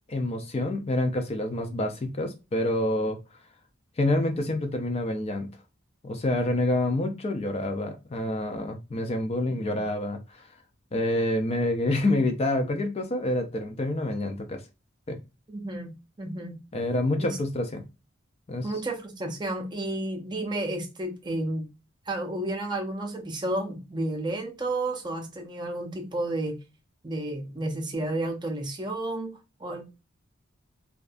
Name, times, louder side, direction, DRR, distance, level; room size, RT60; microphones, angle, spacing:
voice 1, 0.1-3.2 4.0-5.5 6.0-10.4 10.9-14.6 15.1-15.2 16.7-17.8 18.5-18.7, left 1 dB, 30° left, 0.4 m, -27 dB
voice 2, 15.5-16.6 17.2-17.4 18.6-21.7 22.1-26.6 27.0-29.8, right 1 dB, 20° right, 0.5 m, -31 dB
2.5 x 2.3 x 2.4 m
head